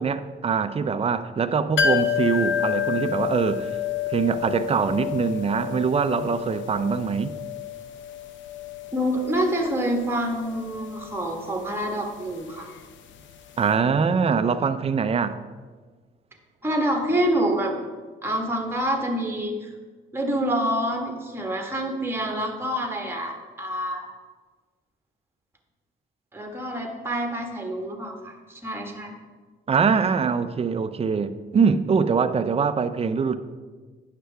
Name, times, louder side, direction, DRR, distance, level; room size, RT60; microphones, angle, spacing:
voice 1, 0.0-3.7 4.1-7.4 13.6-15.4 29.7-33.4, right 5 dB, 30° right, 0.5 m, -23 dB
sound 1, 1.8-13.4 13.6-13.7, left 8 dB, 70° left, 0.7 m, -30 dB
voice 2, 8.9-12.7 16.6-17.8 18.2-19.7 20.1-24.1 26.3-29.1, equal, 10° right, 1.4 m, -27 dB
9.1 x 6.7 x 3.5 m
cardioid pair, 90°, 20 cm